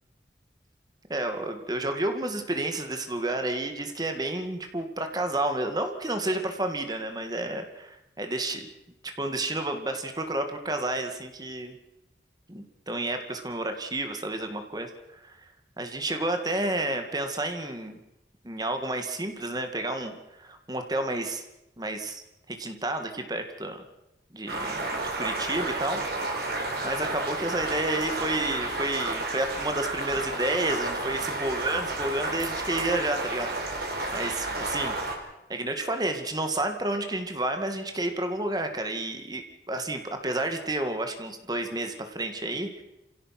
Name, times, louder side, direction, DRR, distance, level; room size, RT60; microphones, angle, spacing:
voice 1, 1.1-8.7 9.2-11.7 12.5-15.4 15.8-18.0 18.4-21.5 21.8-23.8 24.3-24.9 25.2-26.0 26.8-34.9 35.5-39.4 39.7-42.8, right 2 dB, 20° right, 6 dB, 2.0 m, -30 dB
sound 1, 24.5-35.1, right 2 dB, 60° right, 4.5 m, -31 dB
28.5 x 17.0 x 6.0 m, 0.90 s
head